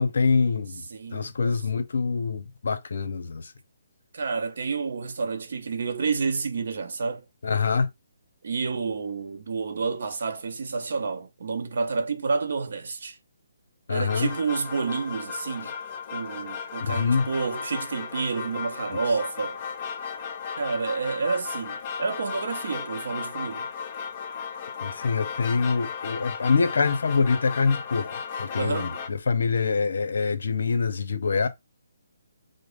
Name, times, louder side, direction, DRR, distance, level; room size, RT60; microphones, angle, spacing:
voice 1, 0.0-0.9 1.1-3.5 7.4-7.9 13.9-14.3 15.6-15.7 16.8-17.3 24.8-31.5, left 4 dB, 65° left, 0.7 m, -25 dB
voice 2, 0.9-1.5 4.1-7.2 8.4-13.2 13.9-15.7 16.1-19.6 20.6-23.7 28.6-29.0, right 4 dB, 55° right, 0.7 m, -29 dB
sound 1, 14.1-29.1, left 6 dB, 25° left, 0.4 m, -35 dB
5.0 x 2.0 x 2.5 m
hypercardioid pair, 170°, 0 cm